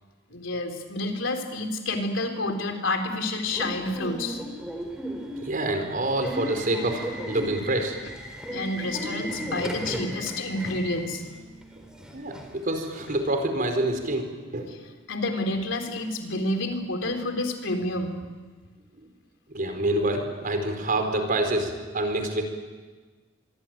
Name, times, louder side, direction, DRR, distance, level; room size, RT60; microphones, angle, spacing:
voice 1, 0.3-4.4 8.0-8.1 8.5-11.2 14.7-14.8 15.1-18.2, left 2 dB, 80° left, 4 dB, 3.7 m, -29 dB
Subway metro underground / Alarm, 3.5-13.3, equal, 5° right, 4.3 m, -36 dB
voice 2, 5.4-8.0 12.1-14.3 14.5-14.7 19.5-22.4, right 1 dB, 45° right, 5 dB, 4.7 m, -27 dB
26.5 x 23.0 x 9.2 m, 1.4 s
head